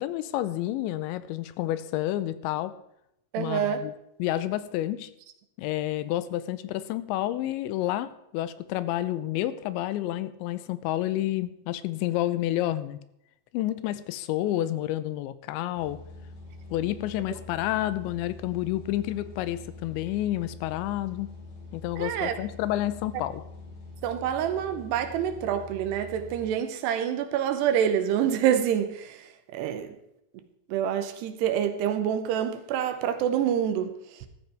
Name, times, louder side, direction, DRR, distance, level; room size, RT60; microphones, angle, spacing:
voice 1, 0.0-2.8 3.4-3.9 4.2-5.1 5.6-13.0 13.5-16.0 16.7-21.3 21.7-23.4, left 14 dB, 85° left, 3.0 m, -29 dB
voice 2, 3.3-3.8 22.0-22.4 24.0-30.0 30.7-34.3, right 9 dB, 75° right, 2.8 m, -27 dB
sound 1, 15.7-26.5, left 2 dB, 50° left, 1.8 m, -45 dB
14.5 x 13.0 x 3.4 m
omnidirectional pair, 5.2 m